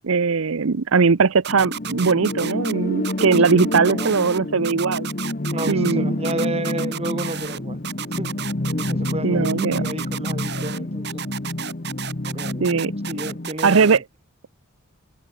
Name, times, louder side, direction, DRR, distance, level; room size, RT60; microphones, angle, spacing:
voice 1, 0.0-5.1 5.7-6.1 9.2-9.8 12.6-12.9 13.6-14.0, right 5 dB, 70° right, 0.7 m, -19 dB
sound 1, 1.4-2.7 3.0-4.4 4.6-5.9 6.2-7.6 7.8-9.1 9.4-10.8 11.0-14.0, right 9 dB, 50° right, 2.1 m, -32 dB
sound 2, 1.5-13.5, left 1 dB, 40° left, 1.1 m, -28 dB
voice 2, 3.5-4.2 5.5-7.8 8.2-8.4 8.7-11.4 12.2-12.7 13.0-14.0, right 1 dB, 30° right, 5.7 m, -32 dB
head